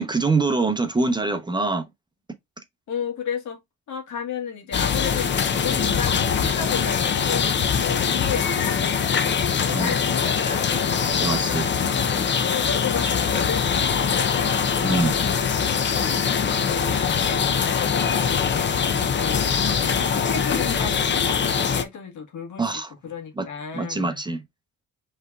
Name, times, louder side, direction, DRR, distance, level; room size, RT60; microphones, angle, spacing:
voice 1, 0.0-1.9 9.7-9.9 11.2-11.7 14.8-15.2 22.6-22.9 23.4-23.5 23.7-24.4, right 3 dB, 15° right, 0.8 m, -24 dB
voice 2, 2.9-3.6 3.9-11.0 12.4-14.6 15.3-16.2 16.6-19.5 19.8-22.6 23.0-24.2, left 7 dB, 75° left, 1.5 m, -33 dB
sound 1, 4.7-21.8, left 6 dB, 40° left, 0.6 m, -23 dB
5.4 x 3.3 x 2.4 m
cardioid pair, 90°, 30 cm